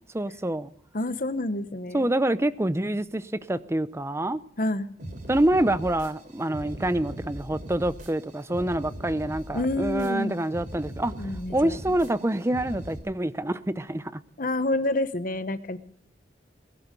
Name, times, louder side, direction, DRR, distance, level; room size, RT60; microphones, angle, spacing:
voice 1, 0.1-0.7 1.9-4.4 5.3-11.1 11.5-14.1, right 1 dB, 15° right, 0.6 m, -26 dB
voice 2, 0.9-2.1 4.6-4.9 9.5-10.4 11.2-11.8 14.4-15.8, left 1 dB, 50° left, 1.1 m, -28 dB
sound 1, 5.0-13.0, equal, 50° right, 3.4 m, -40 dB
21.0 x 11.0 x 5.2 m
head